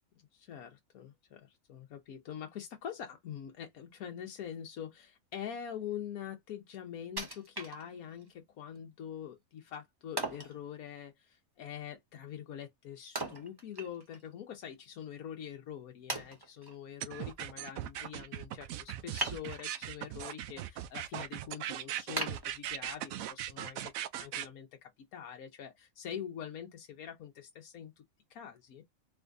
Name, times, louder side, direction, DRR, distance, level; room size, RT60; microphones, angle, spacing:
voice 1, 0.3-27.9 28.3-28.8, left 9 dB, 90° left, 1.3 m, -44 dB
Wood, 7.2-8.3 8.8-8.9 10.2-10.6 13.2-14.3 14.6-14.7 15.4-15.5 16.1-16.8 19.2-19.9 20.4-20.8 21.3-21.4 22.2-23.2 23.7-23.8, right 2 dB, 20° right, 0.9 m, -39 dB
sound 1, 17.0-24.5, right 12 dB, 75° right, 1.0 m, -39 dB
4.3 x 3.4 x 2.6 m
omnidirectional pair, 1.5 m